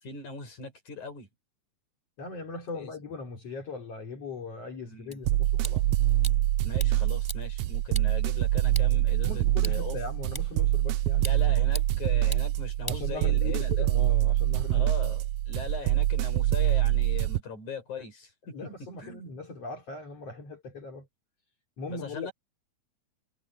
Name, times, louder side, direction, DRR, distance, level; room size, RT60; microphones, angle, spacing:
voice 1, 0.0-1.3 2.7-2.9 4.9-5.2 6.6-10.0 11.2-13.9 14.7-19.2 21.9-22.3, left 5 dB, 85° left, 7.5 m, -40 dB
voice 2, 2.2-5.8 8.9-11.6 12.8-14.9 18.5-21.1 21.8-22.3, left 3 dB, 55° left, 4.4 m, -40 dB
sound 1, 5.1-13.7, equal, 5° left, 6.5 m, -45 dB
sound 2, 5.2-17.4, right 15 dB, 80° right, 1.4 m, -25 dB
omnidirectional pair, 3.3 m